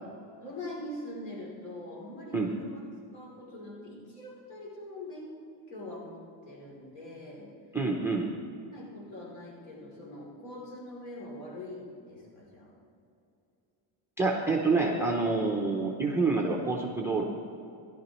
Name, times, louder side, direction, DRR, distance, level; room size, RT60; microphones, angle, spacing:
voice 1, 0.4-2.9 3.1-5.4 5.7-7.5 8.7-12.7, left 1 dB, 75° left, -3 dB, 3.2 m, -43 dB
voice 2, 7.7-8.3 14.2-17.2, right 3 dB, 5° right, -2 dB, 0.5 m, -27 dB
16.5 x 11.5 x 3.0 m, 2.7 s
cardioid pair, 165°, 45 cm